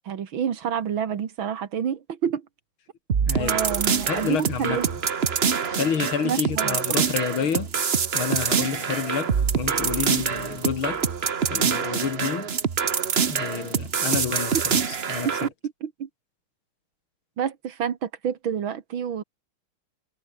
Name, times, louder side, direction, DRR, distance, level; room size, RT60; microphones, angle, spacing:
voice 1, 0.1-2.5 3.4-4.9 6.2-7.0 15.4-15.5 15.8-16.1 17.4-19.2, right 8 dB, 75° right, 2.4 m, -28 dB
sound 1, 3.1-15.5, right 6 dB, 40° right, 1.1 m, -25 dB
voice 2, 3.3-3.6 4.1-4.8 5.7-7.7 8.1-11.0 11.5-12.5 13.3-15.3, left 7 dB, 85° left, 2.9 m, -29 dB
omnidirectional pair, 2.2 m